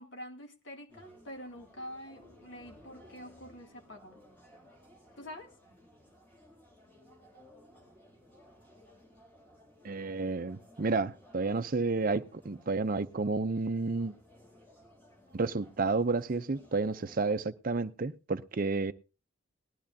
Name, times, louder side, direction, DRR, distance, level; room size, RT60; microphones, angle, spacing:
voice 1, 0.0-4.2 5.2-5.5, equal, 60° left, 2.0 m, -46 dB
sound 1, 0.9-17.4, equal, 10° left, 4.3 m, -59 dB
voice 2, 9.8-14.1 15.3-18.9, right 3 dB, 45° right, 0.5 m, -31 dB
19.0 x 12.5 x 2.7 m
head